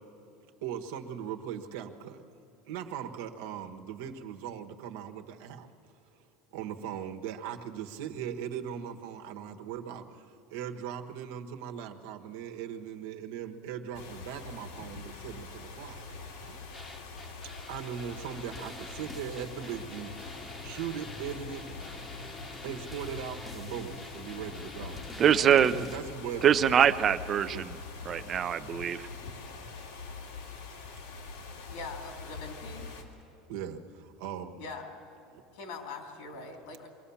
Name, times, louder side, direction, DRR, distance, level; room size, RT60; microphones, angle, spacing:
voice 1, 0.6-2.2 2.7-5.7 6.5-16.6 17.7-21.6 22.6-25.0 25.8-26.4 27.5-27.7 33.5-34.6 35.3-35.4, right 8 dB, 80° right, 5 dB, 1.3 m, -39 dB
sound 1, 13.9-33.0, left 4 dB, 90° left, 2.6 m, -44 dB
sound 2, 16.7-26.0, left 2 dB, 15° left, 1.0 m, -46 dB
voice 2, 25.2-25.8 26.4-27.8 28.1-29.1, right 9 dB, 30° right, 13 dB, 0.6 m, -24 dB
voice 3, 31.7-32.9 34.6-34.9 35.5-36.9, left 3 dB, 70° left, 3 dB, 3.0 m, -42 dB
23.5 x 17.0 x 7.1 m, 2.7 s
supercardioid pair, 140°, 0 cm